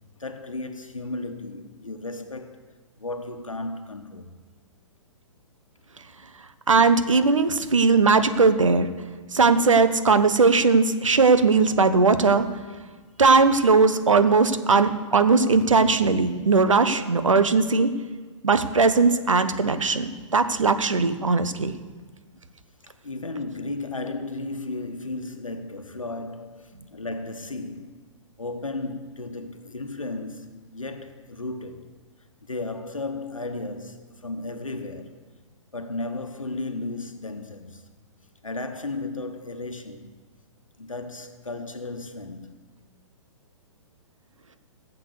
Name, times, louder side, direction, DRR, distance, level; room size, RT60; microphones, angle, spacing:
voice 1, 0.2-2.7 3.0-4.4 22.8-28.0 28.4-31.9 32.4-35.2 35.7-37.9 38.4-40.1 40.8-42.9, left 2 dB, 85° left, 1.2 m, -34 dB
voice 2, 6.7-8.9 9.3-12.5 13.2-17.9 18.4-21.7, right 4 dB, 75° right, 1.1 m, -19 dB
16.5 x 7.5 x 6.6 m
figure-of-eight pair, 120°, 16 cm